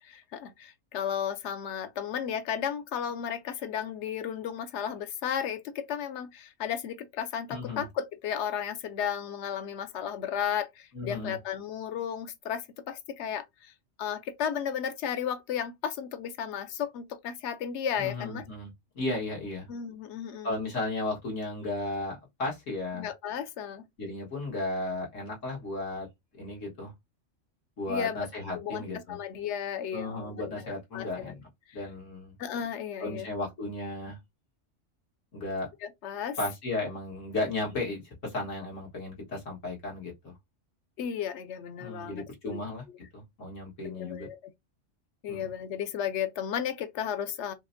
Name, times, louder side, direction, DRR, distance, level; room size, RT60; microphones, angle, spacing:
voice 1, 0.0-13.7 14.0-18.4 19.7-20.6 22.9-23.8 27.9-28.3 28.5-30.6 30.9-31.3 32.4-33.3 35.8-36.4 41.0-42.6 43.8-44.4 45.2-47.5, left 8 dB, 70° left, 0.9 m, -34 dB
voice 2, 7.5-7.9 10.9-11.4 18.0-19.7 20.4-23.1 24.0-26.1 26.3-26.9 27.8-29.2 29.9-31.4 31.7-32.4 33.0-34.2 35.3-35.7 36.4-40.4 41.8-42.8 43.1-44.3 45.3-45.5, left 2 dB, 85° left, 1.9 m, -34 dB
4.8 x 2.1 x 2.5 m
omnidirectional pair, 1.3 m